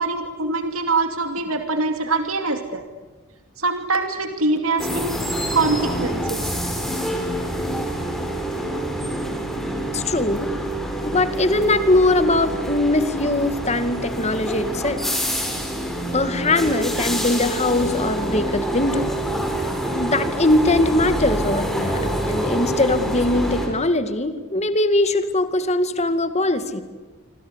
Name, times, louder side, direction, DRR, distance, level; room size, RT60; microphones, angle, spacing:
voice 1, 0.0-2.8 3.6-5.2 5.5-6.5, right 3 dB, 75° right, 6 dB, 2.5 m, -23 dB
sound 1, 4.8-23.7, right 1 dB, ahead, 5.3 m, -26 dB
voice 2, 9.9-10.5 11.0-15.0 16.1-19.1 20.0-22.0 22.3-26.8, left 2 dB, 30° left, 10 dB, 2.1 m, -21 dB
27.0 x 26.0 x 8.2 m, 1.3 s
head